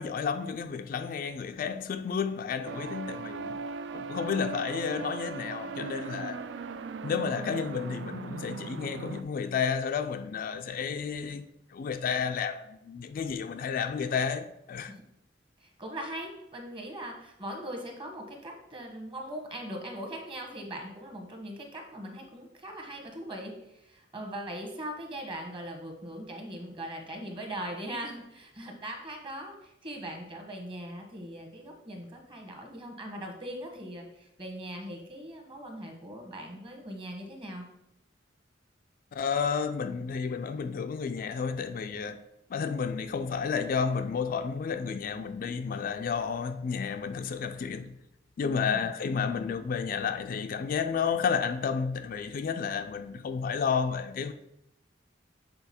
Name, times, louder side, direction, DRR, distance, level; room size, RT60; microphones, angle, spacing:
voice 1, 0.0-3.6 3.9-6.5 7.0-14.9 39.1-42.2 42.5-47.9 48.4-54.3, left 6 dB, 50° left, 0.3 m, -31 dB
sound 1, 2.6-9.2, right 4 dB, 70° right, 0.4 m, -38 dB
voice 2, 15.6-37.6 48.4-48.9, right 1 dB, 30° right, 1.2 m, -40 dB
6.8 x 3.8 x 4.3 m
head